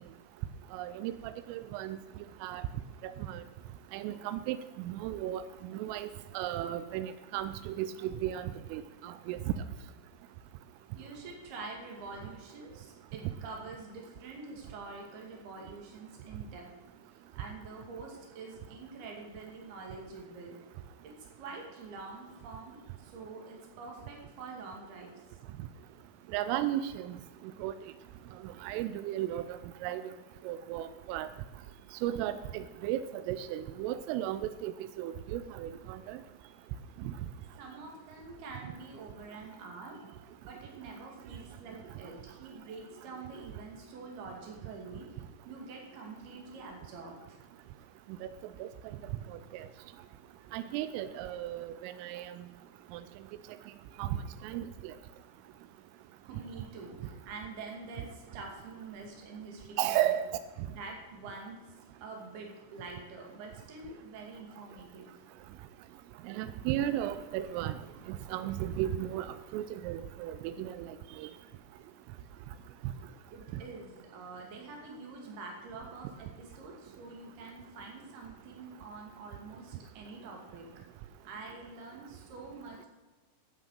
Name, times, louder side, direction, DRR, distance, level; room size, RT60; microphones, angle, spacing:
voice 1, 0.7-2.0 2.4-2.6 3.0-3.4 3.9-6.1 6.3-9.4 26.3-27.2 27.6-27.7 28.6-29.5 29.8-30.0 30.5-31.3 32.0-33.0 33.3-34.7 35.0-36.2 37.1-37.2 48.2-48.3 48.6-48.7 49.5-49.7 50.5-52.4 52.9-53.0 54.0-54.2 54.4-54.9 59.8-60.4 66.3-67.8 68.1-71.3, right 12 dB, 90° right, 12 dB, 3.2 m, -35 dB
voice 2, 11.0-16.7 17.4-20.6 21.0-21.1 21.4-25.1 32.8-32.9 37.6-40.0 40.5-45.1 45.5-47.4 56.2-60.1 60.7-61.6 62.0-65.1 73.3-80.7 81.2-82.9, right 3 dB, 55° right, 0 dB, 3.9 m, -46 dB
12.0 x 7.8 x 6.5 m, 1.3 s
omnidirectional pair, 5.7 m